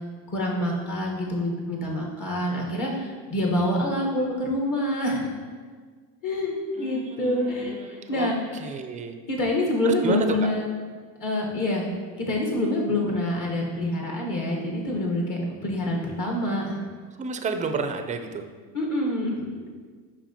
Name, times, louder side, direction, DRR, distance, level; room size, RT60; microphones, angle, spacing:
voice 1, 0.3-5.3 6.2-8.7 9.3-10.6 11.2-11.9 12.2-16.8 18.7-19.3, left 1 dB, 45° left, -2 dB, 1.3 m, -26 dB
voice 2, 6.8-8.3 8.6-9.2 9.9-10.3 17.2-18.4, right 5 dB, 20° right, 7 dB, 0.3 m, -31 dB
7.0 x 5.1 x 2.8 m, 1.5 s
supercardioid pair, 100°, 45 cm